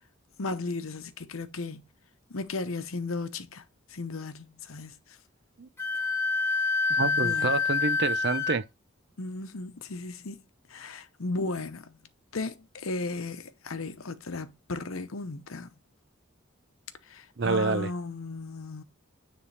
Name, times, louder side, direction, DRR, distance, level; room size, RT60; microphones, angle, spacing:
voice 1, 0.4-1.8 2.3-3.6 3.9-4.9 7.0-7.6 9.2-10.4 10.7-12.0 12.3-15.7 17.1-18.8, left 3 dB, 85° left, 0.8 m, -35 dB
Wind instrument woodwind instrument, 5.8-8.6, left 4 dB, 10° left, 1.1 m, -27 dB
voice 2, 7.0-8.6 17.4-17.9, right 4 dB, 55° right, 0.5 m, -28 dB
9.6 x 3.4 x 3.3 m
head